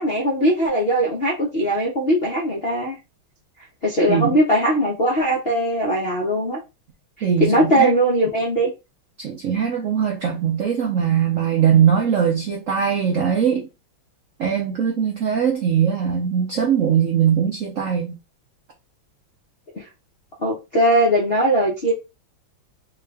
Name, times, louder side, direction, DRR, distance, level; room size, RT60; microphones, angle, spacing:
voice 1, 0.0-3.0 3.8-6.6 7.4-8.7 19.7-19.9 20.4-22.0, right 1 dB, 55° left, 0.6 m, -20 dB
voice 2, 7.2-7.9 9.2-13.7 14.4-18.2, right 8 dB, 70° right, 0.7 m, -20 dB
3.6 x 2.4 x 3.3 m
omnidirectional pair, 2.2 m